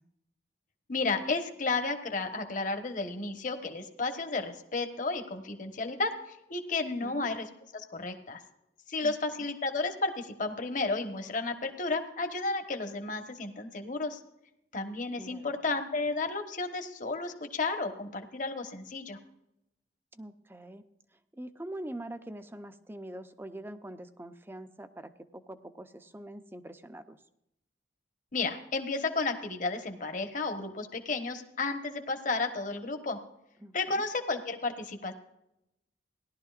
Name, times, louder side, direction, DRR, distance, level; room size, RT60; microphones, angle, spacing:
voice 1, 0.9-7.5 7.7-8.4 8.9-14.2 14.7-19.2 28.3-33.2 33.7-35.1, left 3 dB, 45° left, 6 dB, 1.2 m, -32 dB
voice 2, 15.2-15.6 20.1-20.8 21.3-27.2 33.6-34.0, right 1 dB, 15° right, 10 dB, 0.6 m, -44 dB
17.5 x 11.5 x 2.5 m, 0.84 s
head